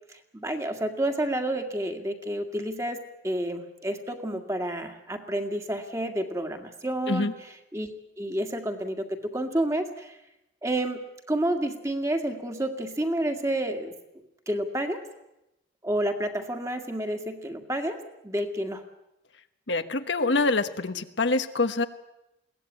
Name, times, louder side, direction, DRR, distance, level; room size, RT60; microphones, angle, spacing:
voice 1, 0.1-7.3 7.7-7.9 8.2-10.2 10.6-13.9 14.5-15.0 15.8-18.0 18.2-18.8, right 1 dB, 15° right, 6 dB, 1.9 m, -30 dB
voice 2, 19.7-21.8, left 3 dB, 75° left, 9 dB, 1.2 m, -25 dB
22.0 x 17.0 x 9.5 m, 0.91 s
head